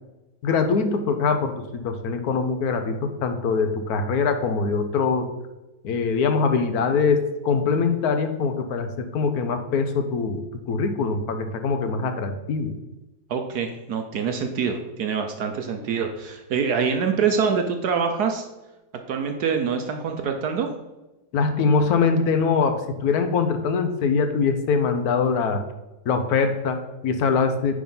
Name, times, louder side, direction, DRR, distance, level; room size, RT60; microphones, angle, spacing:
voice 1, 0.4-5.3 5.8-12.8 21.3-25.6 26.1-27.7, left 5 dB, 60° left, 7 dB, 1.2 m, -23 dB
voice 2, 13.3-18.4 19.1-20.7, right 6 dB, 65° right, 5 dB, 1.2 m, -25 dB
9.5 x 3.8 x 5.5 m, 1.0 s
omnidirectional pair, 2.1 m